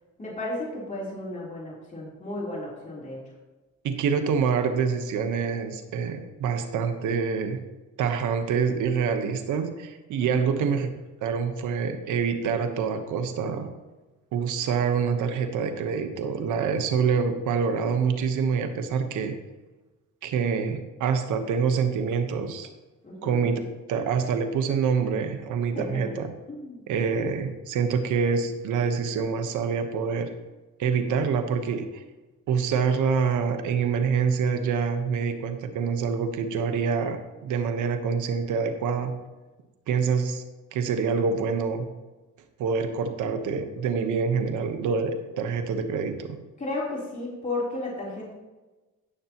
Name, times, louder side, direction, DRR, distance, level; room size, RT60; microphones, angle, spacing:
voice 1, 0.2-3.2 10.3-10.6 23.0-23.5 25.7-26.0 26.5-26.8 46.6-48.3, left 2 dB, 25° left, -5 dB, 3.6 m, -33 dB
voice 2, 3.8-7.6 8.0-10.9 11.2-13.7 14.3-19.3 20.2-22.7 23.2-23.6 23.9-26.3 26.9-30.3 30.8-32.0 32.5-39.1 39.9-40.4 40.7-41.9 42.6-46.4, right 6 dB, 85° right, 7 dB, 1.2 m, -26 dB
16.5 x 6.7 x 3.0 m, 1.1 s
cardioid pair, 90°, 30 cm